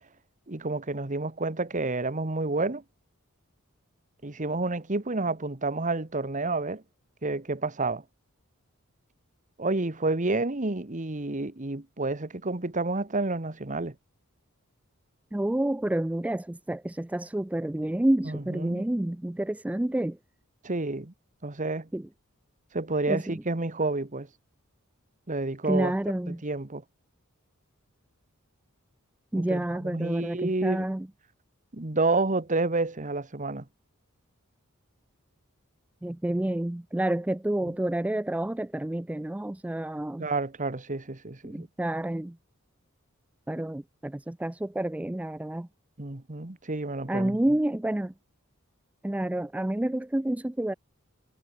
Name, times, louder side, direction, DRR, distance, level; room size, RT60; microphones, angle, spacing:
voice 1, 0.5-2.8 4.2-6.8 7.2-8.0 9.6-13.9 18.2-18.8 20.6-21.1 21.4-21.9 22.7-24.3 25.3-25.9 26.3-26.8 29.3-30.9 31.7-33.6 37.6-37.7 40.2-41.7 46.0-47.4, right 3 dB, 35° right, 1.4 m, -29 dB
voice 2, 15.3-20.2 21.9-22.1 23.1-23.4 25.7-26.4 29.3-31.1 36.0-40.3 41.4-42.4 43.5-45.7 47.1-48.1 49.0-50.7, right 1 dB, 5° right, 0.3 m, -29 dB
head